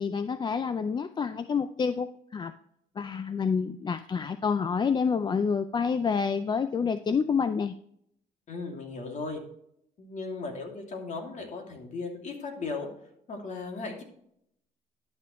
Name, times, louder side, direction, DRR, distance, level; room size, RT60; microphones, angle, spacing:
voice 1, 0.0-2.5 3.0-7.7, left 6 dB, 25° left, 11 dB, 0.4 m, -28 dB
voice 2, 8.5-9.4 10.0-12.9 13.3-14.0, left 3 dB, 45° left, 2 dB, 2.7 m, -36 dB
11.5 x 6.9 x 3.2 m, 0.71 s
cardioid pair, 110°, 17 cm